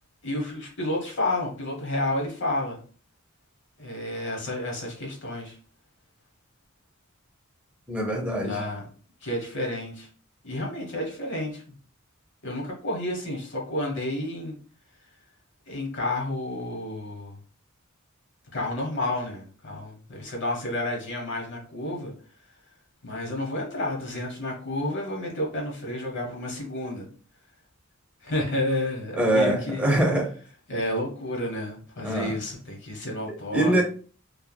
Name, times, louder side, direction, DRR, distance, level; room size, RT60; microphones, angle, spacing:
voice 1, 0.2-2.8 3.8-5.6 8.4-8.9 9.2-10.1 10.4-11.6 12.4-14.6 15.7-17.4 18.5-22.1 23.0-27.1 28.2-30.0 30.7-33.8, left 1 dB, 60° left, 1.0 m, -30 dB
voice 2, 7.9-8.6 29.2-30.3 32.0-32.3 33.3-33.8, right 1 dB, 5° right, 0.7 m, -23 dB
3.1 x 2.3 x 2.2 m
head